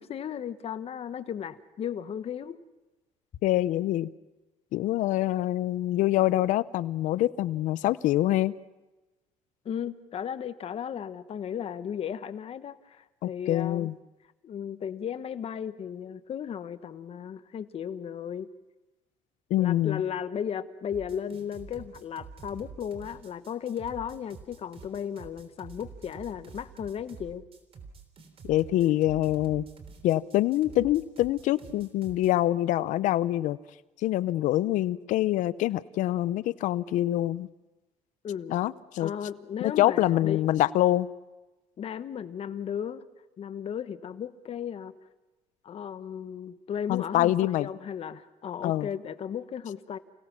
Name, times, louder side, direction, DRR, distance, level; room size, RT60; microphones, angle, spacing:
voice 1, 0.0-2.6 9.6-13.9 14.4-18.5 19.6-27.4 38.2-38.6 39.0-40.5 41.8-43.0 43.4-44.9 45.6-50.0, left 8 dB, 50° left, 12 dB, 1.2 m, -35 dB
voice 2, 3.4-4.1 4.7-8.5 13.2-14.0 19.5-20.0 28.4-29.7 30.0-33.6 34.0-37.5 38.5-39.1 39.6-41.1 46.9-47.7 48.6-48.9, left 14 dB, 75° left, 17 dB, 0.7 m, -25 dB
sound 1, 20.9-32.3, right 5 dB, 45° right, 3.5 m, -48 dB
29.0 x 17.5 x 5.9 m, 1.1 s
cardioid pair, 95°, 13 cm